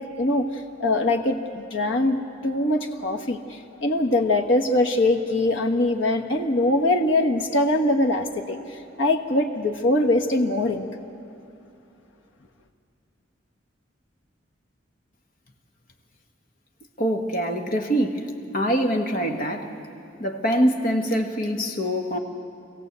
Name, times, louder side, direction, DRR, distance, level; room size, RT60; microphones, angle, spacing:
voice 1, 0.0-10.9, left 1 dB, 85° left, 3 dB, 1.4 m, -23 dB
voice 2, 17.0-18.2 18.5-19.7 20.2-22.2, equal, 45° left, 3 dB, 1.7 m, -24 dB
25.5 x 16.5 x 8.2 m, 2.7 s
head